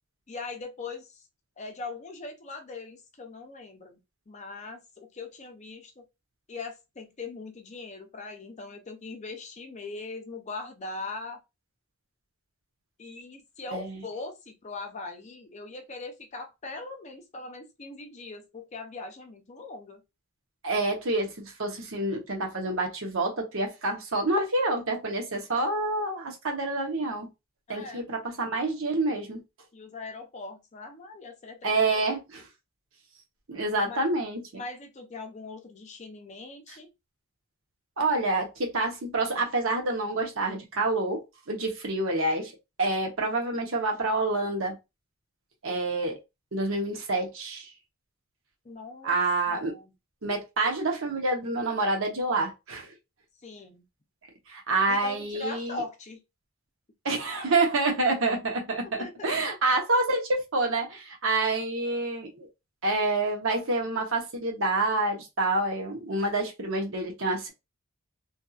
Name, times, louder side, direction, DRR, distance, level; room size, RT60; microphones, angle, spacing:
voice 1, 0.3-1.2 1.6-4.0 4.3-6.1 6.5-11.4 13.0-20.0 27.7-28.0 29.7-32.1 33.8-34.1 34.5-36.9 48.6-49.2 49.5-49.9 53.4-53.8 54.9-56.2 58.8-59.4, left 3 dB, 30° left, 0.5 m, -41 dB
voice 2, 20.6-27.3 27.7-29.4 31.6-32.4 33.5-34.6 38.0-42.5 42.8-44.8 45.6-46.2 46.5-47.7 49.0-49.7 50.2-52.9 54.5-55.8 57.0-62.5 62.8-67.5, right 2 dB, 60° right, 0.9 m, -27 dB
2.7 x 2.5 x 2.3 m
head